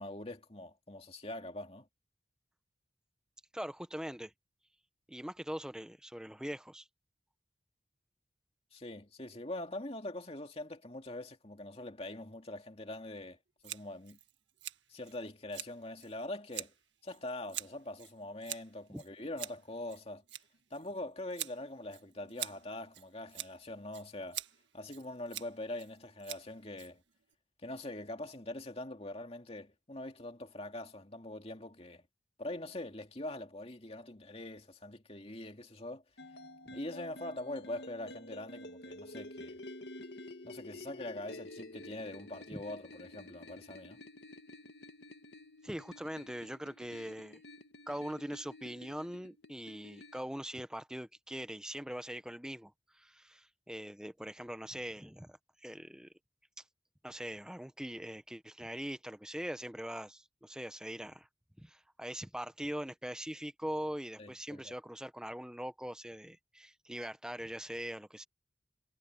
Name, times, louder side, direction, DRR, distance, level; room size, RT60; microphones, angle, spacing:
voice 1, 0.0-1.9 8.7-13.4 13.6-14.2 14.9-16.7 17.0-20.2 20.7-24.4 24.7-27.0 27.6-32.0 32.4-36.0 36.7-39.6 40.4-44.0 64.2-64.7, left 1 dB, 30° left, 2.5 m, -43 dB
voice 2, 3.5-4.3 5.1-6.9 18.9-19.0 42.5-42.6 45.6-47.4 47.9-56.1 57.0-61.3 61.6-68.2, equal, 5° right, 0.9 m, -42 dB
Scissors, 13.6-27.3, right 12 dB, 80° right, 1.6 m, -46 dB
sound 1, 36.2-50.2, left 1 dB, 65° left, 2.1 m, -50 dB
head